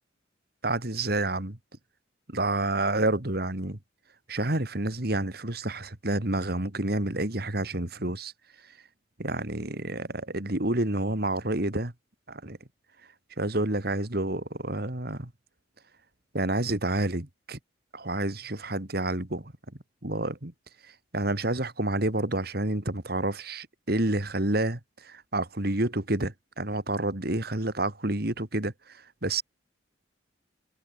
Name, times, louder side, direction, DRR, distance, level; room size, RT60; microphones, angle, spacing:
voice 1, 0.6-1.6 2.3-3.8 4.3-8.3 9.2-11.9 12.3-12.6 13.4-15.3 16.3-17.6 17.9-19.5 20.0-20.5 21.1-29.4, right 2 dB, 50° right, 2.3 m, -29 dB
head